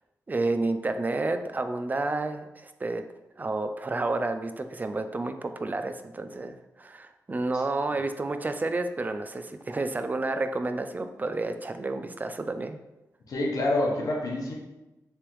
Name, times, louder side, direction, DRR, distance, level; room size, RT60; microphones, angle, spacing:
voice 1, 0.3-3.0 3.4-12.8, right 2 dB, 30° right, 8 dB, 0.3 m, -30 dB
voice 2, 13.3-14.5, left 1 dB, 70° left, -1 dB, 0.9 m, -27 dB
3.4 x 3.3 x 3.1 m, 1.0 s
cardioid pair, 75°, 6 cm